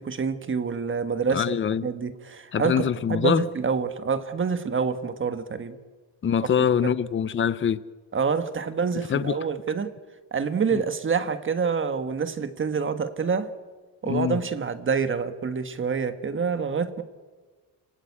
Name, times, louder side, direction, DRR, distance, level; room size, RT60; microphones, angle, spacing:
voice 1, 0.0-1.6 1.8-5.8 6.8-6.9 8.1-9.9 10.3-13.5 14.0-17.0, right 5 dB, 30° right, 1.5 m, -27 dB
voice 2, 1.3-1.9 2.5-3.5 6.2-7.8 9.1-9.4 10.7-10.8 14.0-14.4, left 8 dB, 30° left, 0.7 m, -24 dB
29.5 x 18.0 x 8.6 m
cardioid pair, 145°, 42 cm